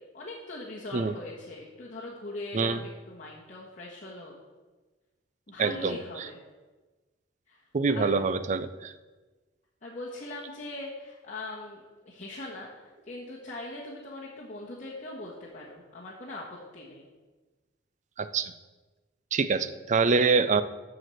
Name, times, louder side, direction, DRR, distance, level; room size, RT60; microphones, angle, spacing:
voice 1, 0.1-4.3 5.5-6.4 7.5-7.6 7.9-8.1 9.8-17.1, left 2 dB, 40° left, -6 dB, 1.4 m, -41 dB
voice 2, 5.6-6.0 7.7-8.9 18.2-18.5 19.3-20.6, right 4 dB, 40° right, 12 dB, 0.5 m, -25 dB
7.6 x 6.2 x 7.7 m, 1.3 s
head